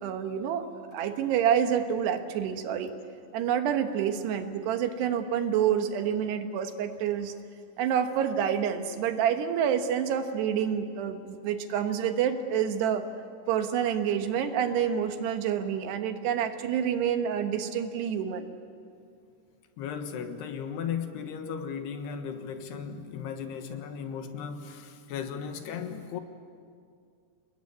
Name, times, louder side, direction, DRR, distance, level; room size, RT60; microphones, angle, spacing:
voice 1, 0.0-2.9 3.3-7.3 7.8-13.0 13.5-18.5, right 8 dB, 85° right, 3.4 m, -28 dB
voice 2, 19.8-26.2, left 7 dB, 80° left, 3.5 m, -36 dB
29.0 x 20.0 x 8.4 m
omnidirectional pair, 4.7 m